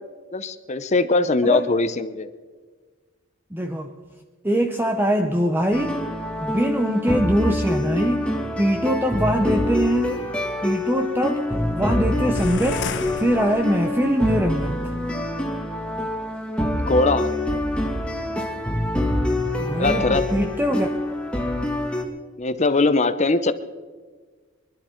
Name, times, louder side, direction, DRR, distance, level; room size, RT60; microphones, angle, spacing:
voice 1, 0.3-2.3 16.8-17.3 19.8-20.3 22.4-23.5, left 3 dB, 35° left, 12 dB, 0.7 m, -21 dB
voice 2, 3.5-3.9 4.4-6.0 6.4-8.3 8.6-10.3 10.6-12.9 13.2-14.9 19.6-20.9, equal, 10° right, 5 dB, 0.7 m, -22 dB
sound 1, 5.7-22.0, left 1 dB, 5° left, 1.6 m, -26 dB
sound 2, 12.3-14.2, left 4 dB, 60° left, 0.9 m, -32 dB
24.5 x 11.5 x 4.4 m, 1.4 s
head